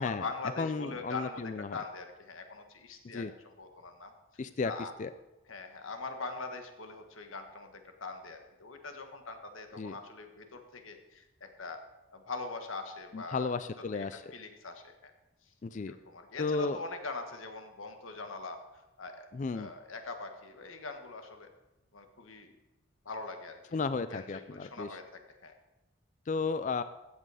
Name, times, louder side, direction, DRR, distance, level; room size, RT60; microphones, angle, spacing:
voice 1, 0.0-4.1 4.6-4.9 5.5-11.8 12.1-13.5 13.9-15.1 15.9-21.5 21.9-22.5 23.0-23.8 24.1-25.5, left 3 dB, 80° left, 6 dB, 1.5 m, -42 dB
voice 2, 0.6-1.8 3.1-3.3 4.4-4.7 5.0-5.1 9.8-10.0 13.1-14.3 15.6-15.9 16.4-16.8 19.3-19.7 23.7-24.9 26.3-26.8, left 4 dB, 40° left, 12 dB, 0.4 m, -33 dB
15.0 x 7.6 x 4.9 m, 1.0 s
head